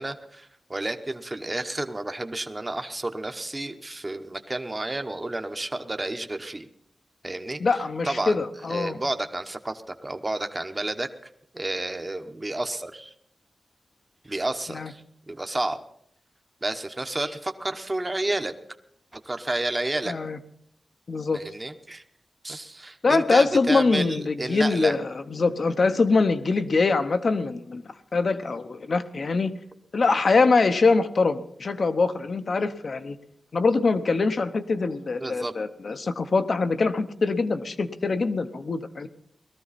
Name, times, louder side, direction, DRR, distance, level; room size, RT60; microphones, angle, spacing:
voice 1, 0.0-6.7 7.2-7.6 8.0-11.1 11.5-13.1 14.2-15.8 16.6-18.5 19.1-20.1 21.3-22.0 22.4-25.0 35.2-35.5, right 2 dB, 25° right, 7 dB, 1.0 m, -31 dB
voice 2, 7.6-9.0 14.7-14.9 20.1-20.4 21.1-21.4 23.0-27.8 28.1-29.5 29.9-33.2 33.5-39.1, left 4 dB, 60° left, 9 dB, 0.9 m, -23 dB
19.0 x 13.5 x 4.2 m, 0.72 s
wide cardioid pair, 105°, 0 cm